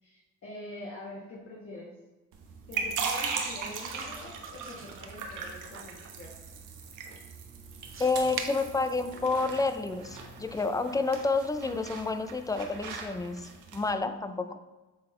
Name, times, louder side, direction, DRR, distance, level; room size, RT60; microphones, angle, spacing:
voice 1, 0.0-1.9 2.7-6.3, left 2 dB, 45° left, -4 dB, 1.5 m, -45 dB
sound 1, 2.3-13.9, right 5 dB, 85° right, 1.1 m, -39 dB
sound 2, 3.4-9.6, right 6 dB, 45° right, 0.7 m, -45 dB
voice 2, 8.0-14.6, left 3 dB, 10° left, 9 dB, 0.5 m, -29 dB
7.9 x 4.0 x 3.8 m, 1.1 s
cardioid pair, 90°, 30 cm